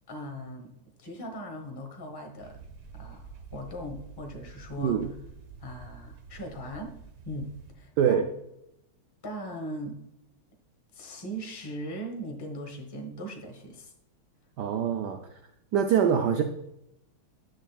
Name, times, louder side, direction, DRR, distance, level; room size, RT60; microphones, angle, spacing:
voice 1, 0.1-0.7 1.0-2.6 2.9-5.0 5.6-6.9 7.2-8.2 9.2-10.0 10.9-13.9, equal, 20° left, 3 dB, 0.6 m, -39 dB
sound 1, 2.4-7.7, right 5 dB, 55° right, 1.1 m, -47 dB
voice 2, 14.6-15.2 15.7-16.4, right 8 dB, 80° right, 5 dB, 0.9 m, -24 dB
9.9 x 6.4 x 2.3 m, 0.83 s
omnidirectional pair, 2.4 m